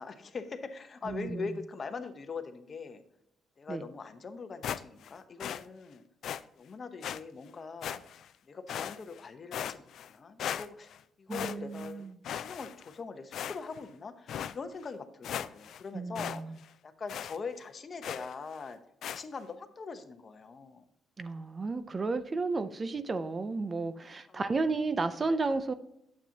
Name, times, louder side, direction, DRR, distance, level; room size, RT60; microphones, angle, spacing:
voice 1, 0.0-3.0 3.6-6.0 6.6-8.0 8.4-12.0 12.4-16.4 16.8-18.8 19.1-20.8 24.3-24.4 25.2-25.6, left 4 dB, 40° left, 9 dB, 0.8 m, -42 dB
voice 2, 1.1-1.5 3.7-3.8 11.3-12.1 15.9-16.5 21.2-25.7, right 3 dB, 35° right, 12 dB, 0.5 m, -33 dB
sound 1, 4.6-5.1 5.4-5.6 6.2-6.4 7.0-7.2 7.8-8.3 8.7-9.2 9.5-10.1 10.4-11.0 11.3-11.9 12.2-12.9 13.3-13.8 14.3-14.5 14.9-15.0 15.2-15.8 16.2-16.4 16.6-16.7 17.1-17.4 18.0-18.3 19.0-19.2, left 9 dB, 70° left, 0.3 m, -37 dB
8.8 x 7.3 x 2.8 m, 0.79 s
cardioid pair, 90°, 0 cm